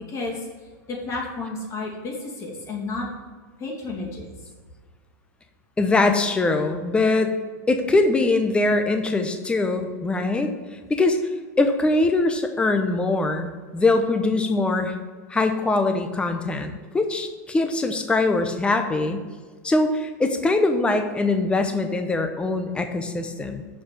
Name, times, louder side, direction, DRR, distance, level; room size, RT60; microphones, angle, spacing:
voice 1, 0.1-0.5 0.9-3.1 3.6-4.3, left 3 dB, 30° left, -1 dB, 2.5 m, -31 dB
voice 2, 5.8-7.4 7.7-10.5 10.9-11.2 11.6-14.9 15.3-19.2 19.6-23.7, left 2 dB, 10° left, 6 dB, 0.9 m, -22 dB
7.1 x 5.1 x 6.8 m, 1.5 s
supercardioid pair, 130°, 9 cm